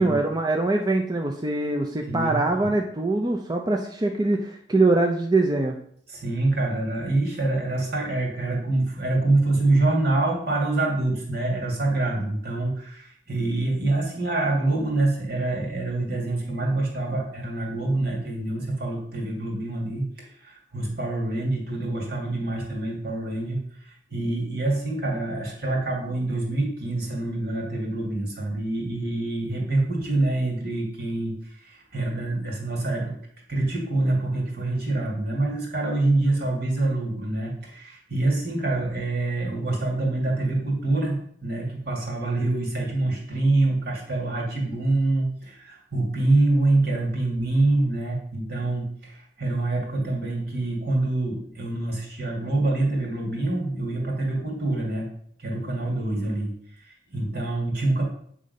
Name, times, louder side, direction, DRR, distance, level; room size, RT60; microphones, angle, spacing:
voice 1, 0.0-5.8, right 2 dB, 25° right, 2 dB, 0.6 m, -23 dB
voice 2, 2.1-2.7 6.1-33.1 33.5-55.1 55.4-56.5 56.8-58.0, right 2 dB, 60° right, -1 dB, 2.3 m, -26 dB
8.5 x 3.8 x 5.3 m, 0.64 s
head